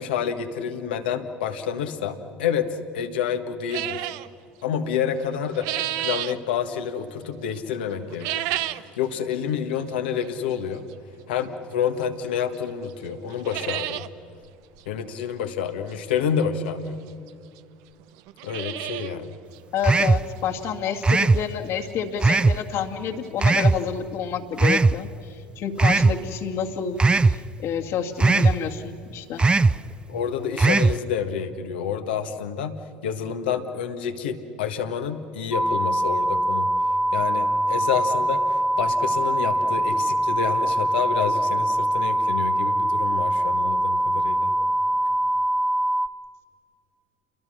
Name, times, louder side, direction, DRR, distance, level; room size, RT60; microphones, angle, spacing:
voice 1, 0.0-2.7 2.9-4.1 4.6-5.7 6.0-8.4 9.0-10.8 11.3-14.0 14.9-17.0 18.4-19.3 30.1-32.8 33.0-36.7 37.1-44.5, left 7 dB, 85° left, 7 dB, 1.6 m, -28 dB
sound 1, 3.7-4.3 5.2-6.4 8.1-8.9 9.3-9.4 10.2-10.3 12.0-12.1 12.5-12.6 12.9-13.0 13.3-14.1 14.4-14.5 14.8-14.9 16.4-16.5 17.3-17.4 17.6-17.7 18.2-19.2 19.5-19.6 20.1-20.2 20.6-20.7 22.5-22.6 22.7-22.8 23.3-23.4, right 15 dB, 70° right, 0.7 m, -30 dB
voice 2, 19.7-29.4, left 7 dB, 65° left, 2 dB, 2.2 m, -29 dB
sound 2, 19.8-20.3 21.0-21.4 22.2-22.6 23.4-23.8 24.6-25.0 25.8-26.2 27.0-27.4 28.2-28.6 29.4-29.8 30.6-31.0, right 3 dB, 20° right, 0.5 m, -18 dB
sound 3, 35.5-46.1, right 1 dB, ahead, 1.2 m, -23 dB
29.5 x 22.5 x 6.5 m, 2.5 s
hypercardioid pair, 75°, 5 cm